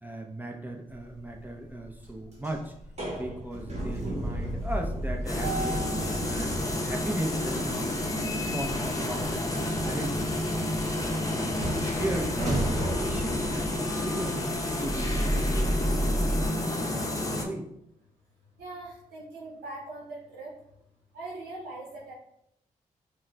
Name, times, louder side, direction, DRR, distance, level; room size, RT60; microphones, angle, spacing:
voice 1, 0.0-2.7 3.2-5.8 6.3-7.9 8.3-10.8 11.3-14.4 14.8-17.7, right 1 dB, 10° right, 1 dB, 0.6 m, -37 dB
sound 1, 0.9-1.4 1.8-16.5, right 1 dB, 45° right, 1.1 m, -33 dB
sound 2, 5.3-17.4, left 1 dB, 20° left, 0.7 m, -30 dB
voice 2, 18.6-20.5 21.1-22.1, right 2 dB, 85° right, -4 dB, 0.6 m, -41 dB
5.3 x 2.0 x 2.2 m, 0.77 s
supercardioid pair, 45°, 16 cm